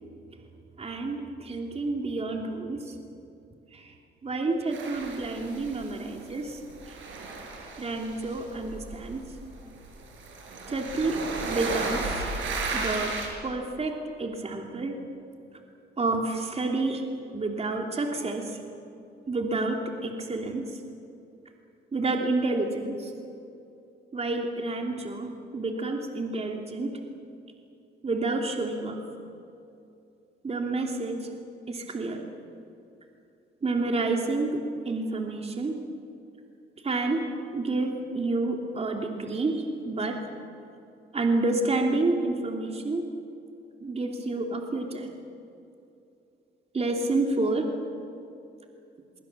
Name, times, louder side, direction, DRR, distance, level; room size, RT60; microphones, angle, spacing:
voice 1, 0.8-2.9 3.7-3.9 4.2-6.6 7.8-9.2 10.7-12.2 12.7-15.0 16.0-17.0 17.3-18.6 19.3-20.8 21.9-23.1 24.1-27.0 28.0-29.0 30.4-31.3 31.7-32.2 33.6-35.8 36.8-37.3 37.5-40.2 41.1-43.1 43.8-45.1 46.7-47.7, right 2 dB, 30° right, 2 dB, 3.0 m, -29 dB
sound 1, 4.7-6.3 6.6-13.3, right 3 dB, 75° right, 6.0 m, -34 dB
25.0 x 23.0 x 7.5 m, 2.6 s
cardioid pair, 90°, 20 cm